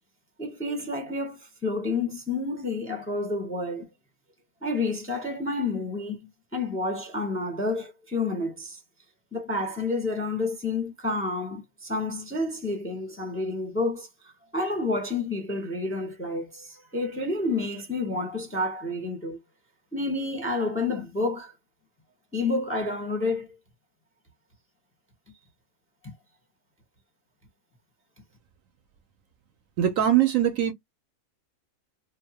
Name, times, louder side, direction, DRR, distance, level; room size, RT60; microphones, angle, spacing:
voice 1, 0.4-3.9 4.6-6.2 6.5-8.8 9.3-19.4 19.9-21.5 22.3-23.5 26.0-26.1, left 2 dB, 10° left, 0.7 m, -29 dB
voice 2, 29.8-30.7, right 11 dB, 65° right, 0.9 m, -21 dB
2.8 x 2.1 x 2.7 m
omnidirectional pair, 1.6 m